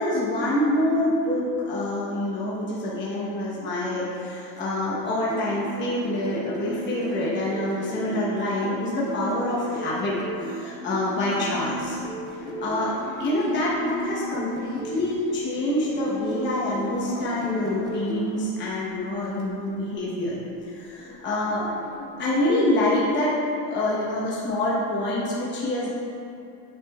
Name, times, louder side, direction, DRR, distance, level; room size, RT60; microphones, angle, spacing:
voice 1, 0.0-12.0 12.6-12.9 13.2-20.3 20.7-21.7 22.2-23.4 23.7-25.9, left 1 dB, 25° left, -7 dB, 1.0 m, -26 dB
sound 1, 4.9-15.2 16.0-18.3 19.4-20.0, right 1 dB, 10° right, 0.3 m, -35 dB
sound 2, 11.7-23.2, left 2 dB, 55° left, 1.2 m, -43 dB
9.2 x 5.1 x 2.3 m, 2.6 s
cardioid pair, 145°, 46 cm